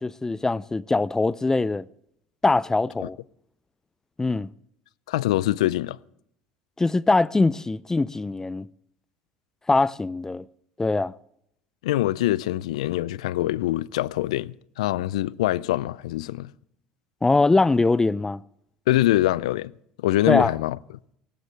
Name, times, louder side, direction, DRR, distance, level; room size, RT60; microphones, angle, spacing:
voice 1, 0.0-1.9 2.4-3.2 4.2-4.5 6.8-8.7 9.7-10.4 10.8-11.1 17.2-18.4 20.3-20.5, left 3 dB, 15° left, 0.5 m, -22 dB
voice 2, 5.1-6.0 11.8-16.5 18.9-19.7 20.0-20.8, left 15 dB, 80° left, 0.4 m, -24 dB
18.0 x 16.0 x 3.3 m
hypercardioid pair, 75°, 3 cm